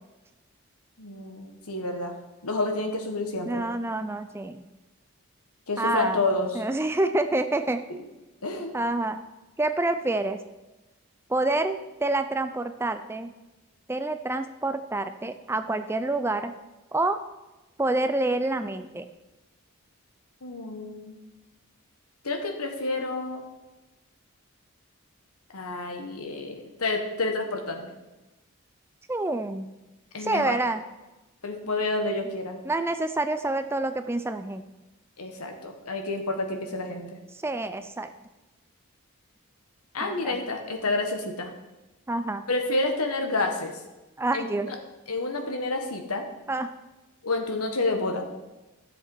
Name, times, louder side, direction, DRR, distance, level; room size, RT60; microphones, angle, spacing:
voice 1, 1.0-2.1 2.4-3.7 5.7-6.6 7.9-8.0 8.4-8.7 20.4-21.2 22.2-23.4 25.5-27.9 30.1-30.6 31.4-32.6 35.2-37.2 39.9-41.5 42.5-43.7 44.3-44.7 45.1-46.2 47.2-48.2, left 2 dB, 90° left, 4 dB, 1.5 m, -29 dB
voice 2, 3.5-4.6 5.8-6.2 6.5-7.8 8.7-9.2 9.6-10.4 11.3-13.3 13.9-16.5 16.9-17.2 17.8-19.1 29.1-29.7 30.2-30.8 32.6-34.6 37.4-38.1 40.0-40.4 42.1-42.5 44.2-44.7 46.5-46.7, right 2 dB, 10° right, 9 dB, 0.4 m, -27 dB
12.5 x 7.3 x 4.6 m, 1.1 s
head